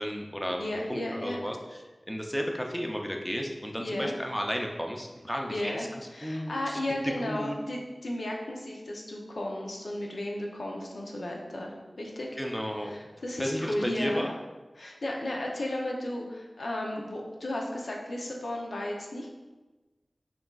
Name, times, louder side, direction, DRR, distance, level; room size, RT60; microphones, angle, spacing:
voice 1, 0.0-1.6 2.1-5.9 6.2-6.8 7.2-7.5 12.4-12.9 13.4-14.4, equal, 5° left, 1 dB, 0.5 m, -33 dB
voice 2, 0.6-1.4 3.8-4.2 5.5-5.9 6.1-12.3 12.8-14.3 14.8-19.5, left 1 dB, 80° left, 0 dB, 0.6 m, -34 dB
5.7 x 2.5 x 2.3 m, 1.2 s
cardioid pair, 45°, 0 cm